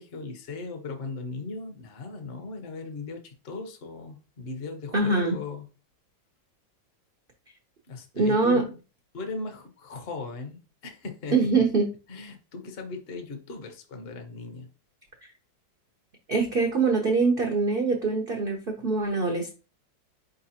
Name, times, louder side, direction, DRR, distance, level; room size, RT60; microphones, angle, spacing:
voice 1, 0.0-5.7 7.9-8.7 9.1-11.4 12.1-14.7, left 3 dB, 50° left, 5 dB, 0.7 m, -38 dB
voice 2, 4.9-5.4 8.2-8.6 11.3-11.9 16.3-19.5, right 3 dB, 75° right, 2 dB, 0.5 m, -23 dB
4.7 x 3.9 x 2.8 m, 0.32 s
omnidirectional pair, 2.1 m